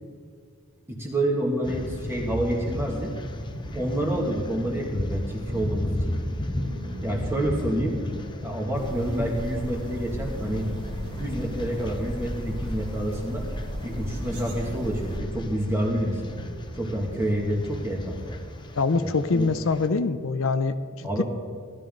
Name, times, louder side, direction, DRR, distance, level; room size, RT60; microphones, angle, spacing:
voice 1, 0.9-3.1 3.7-6.2 7.0-8.0 8.4-10.7 11.0-13.5 13.8-16.3 16.8-18.4 19.0-19.5 21.0-21.2, right 1 dB, 10° right, -1 dB, 2.2 m, -28 dB
sound 1, 1.6-19.9, left 1 dB, 20° left, 0.8 m, -36 dB
sound 2, 2.0-18.7, equal, 50° right, 1.8 m, -40 dB
sound 3, 8.7-15.2, equal, 85° right, 2.6 m, -35 dB
voice 2, 18.7-21.2, left 4 dB, 60° left, 10 dB, 0.6 m, -24 dB
18.0 x 13.0 x 3.9 m, 2.1 s
head